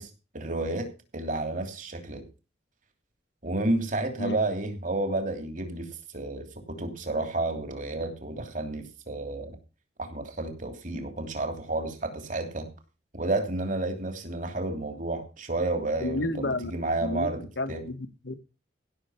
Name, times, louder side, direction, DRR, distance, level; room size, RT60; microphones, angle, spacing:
voice 1, 0.0-2.2 3.4-5.9 6.1-9.6 10.0-12.7 13.1-17.8, right 2 dB, 45° right, 3.0 m, -31 dB
voice 2, 16.0-16.7 17.0-18.4, left 1 dB, 70° left, 1.2 m, -31 dB
16.0 x 6.8 x 5.7 m
head